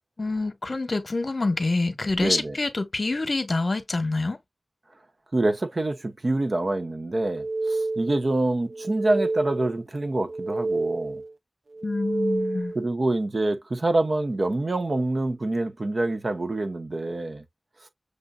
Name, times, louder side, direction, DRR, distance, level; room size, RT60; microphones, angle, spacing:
voice 1, 0.2-4.4 11.8-12.7, left 3 dB, 55° left, 1.0 m, -26 dB
voice 2, 2.2-2.5 5.3-11.2 12.7-17.4, right 2 dB, 55° right, 0.9 m, -26 dB
sound 1, 7.2-8.3 8.7-9.8 10.2-11.3 11.7-12.9, right 2 dB, 70° right, 0.4 m, -29 dB
6.5 x 2.6 x 2.2 m
wide cardioid pair, 75°, 0 cm